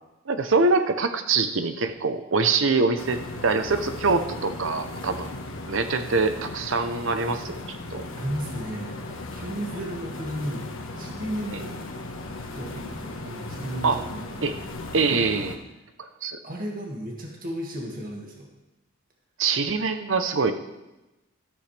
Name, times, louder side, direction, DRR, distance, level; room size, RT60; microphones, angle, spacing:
voice 1, 0.3-5.3 5.7-8.0 11.5-11.6 13.8-14.0 14.4-14.5 14.9-15.5 16.0-16.4 19.4-20.5, right 4 dB, 65° right, 8 dB, 0.8 m, -24 dB
sound 1, 3.0-15.6, left 2 dB, 75° left, 1.5 m, -37 dB
voice 2, 8.2-11.7 12.5-14.5 15.1-15.2 16.4-18.5, equal, 45° right, -1 dB, 2.0 m, -34 dB
13.5 x 13.5 x 3.4 m, 0.99 s
head